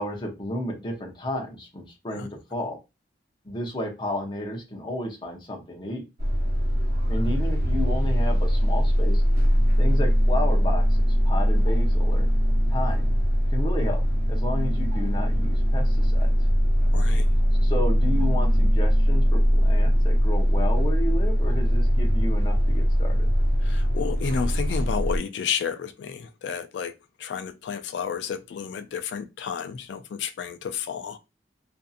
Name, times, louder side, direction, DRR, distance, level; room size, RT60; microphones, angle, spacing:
voice 1, 0.0-2.8 3.4-6.1 7.0-9.2 9.8-12.3 12.7-13.1 13.5-14.0 14.3-16.3 17.6-23.3, left 1 dB, 25° left, 0.6 m, -32 dB
sound 1, 6.2-25.2, equal, 55° right, 0.9 m, -21 dB
voice 2, 16.9-17.3 23.6-26.9 27.2-31.2, left 7 dB, 80° left, 0.3 m, -31 dB
2.6 x 2.5 x 2.3 m
head